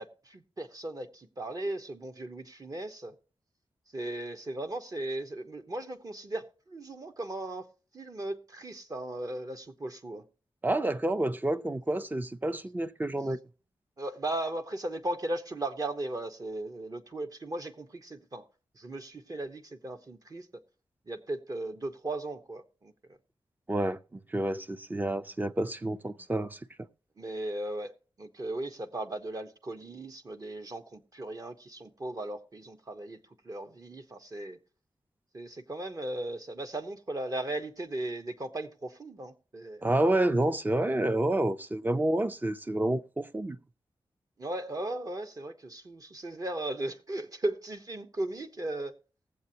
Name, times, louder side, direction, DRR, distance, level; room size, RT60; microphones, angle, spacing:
voice 1, 0.0-3.1 3.9-7.7 7.9-10.2 14.0-18.4 18.8-20.5 21.1-22.9 27.2-27.9 28.2-33.2 33.4-34.6 35.3-39.9 44.4-49.0, right 1 dB, 35° right, 1.1 m, -37 dB
voice 2, 10.6-13.4 23.7-26.6 39.8-43.6, right 1 dB, 20° right, 0.5 m, -29 dB
19.5 x 7.7 x 2.8 m
wide cardioid pair, 105°, 10 cm